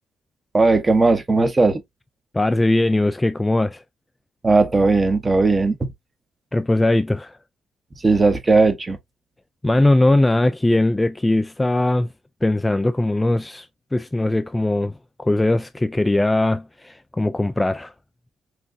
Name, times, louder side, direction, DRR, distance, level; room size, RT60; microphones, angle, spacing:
voice 1, 0.5-1.8 4.4-5.8 8.0-9.0, right 3 dB, 25° right, 0.9 m, -17 dB
voice 2, 2.3-3.8 6.5-7.3 9.6-12.1 12.4-13.7 13.9-17.9, left 1 dB, 15° left, 0.3 m, -20 dB
5.9 x 2.4 x 2.5 m
cardioid pair, 90°, 0 cm